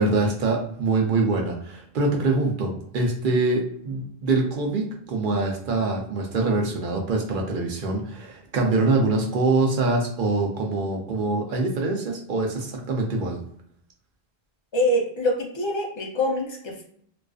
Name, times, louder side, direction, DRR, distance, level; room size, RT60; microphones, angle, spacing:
voice 1, 0.0-13.4, right 3 dB, 60° right, 1 dB, 0.7 m, -24 dB
voice 2, 14.7-16.8, left 1 dB, 45° left, 0 dB, 0.3 m, -25 dB
2.4 x 2.3 x 2.3 m, 0.65 s
omnidirectional pair, 1.0 m